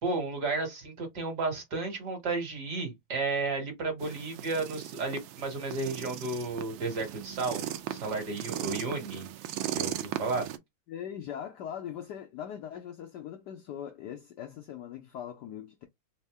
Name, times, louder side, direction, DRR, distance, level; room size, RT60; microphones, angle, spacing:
voice 1, 0.0-7.6 7.9-9.3 9.7-10.5, right 3 dB, 55° right, 1.7 m, -33 dB
sound 1, 4.0-10.6, right 12 dB, 80° right, 1.4 m, -38 dB
voice 2, 10.9-15.9, left 9 dB, 80° left, 0.9 m, -40 dB
3.6 x 2.7 x 3.3 m
omnidirectional pair, 2.3 m